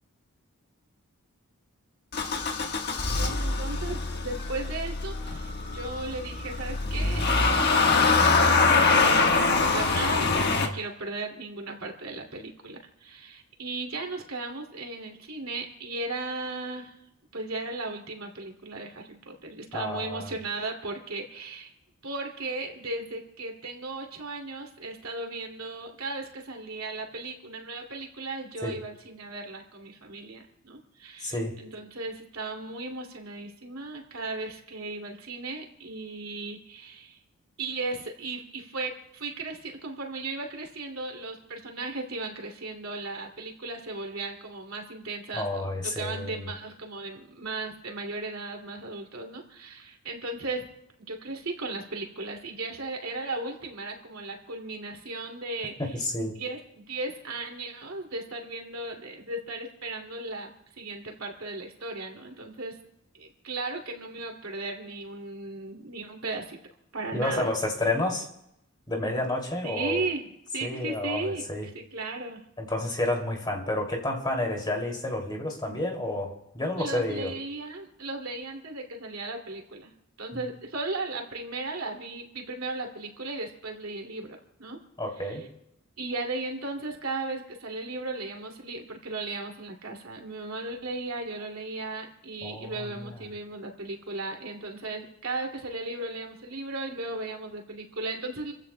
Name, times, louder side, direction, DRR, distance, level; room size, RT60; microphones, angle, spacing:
Motor vehicle (road) / Engine starting, 2.1-10.7, left 4 dB, 50° left, 1.4 m, -24 dB
voice 1, 3.1-17.0 17.3-21.7 22.0-37.2 37.6-45.5 45.8-50.7 51.0-55.7 56.4-62.8 63.1-66.6 66.9-67.5 69.6-71.4 71.9-72.4 76.8-79.9 80.2-84.8 85.3-85.4 86.0-98.5, right 3 dB, 75° right, 2 dB, 2.6 m, -36 dB
voice 2, 19.7-20.3 28.6-28.8 31.2-31.6 45.3-46.5 55.8-56.4 67.1-68.3 68.9-70.0 70.6-71.7 72.6-77.3 80.3-80.4 85.0-85.4 92.4-93.2, left 1 dB, 20° left, 1 dB, 2.6 m, -30 dB
30.0 x 15.5 x 2.2 m, 0.81 s
head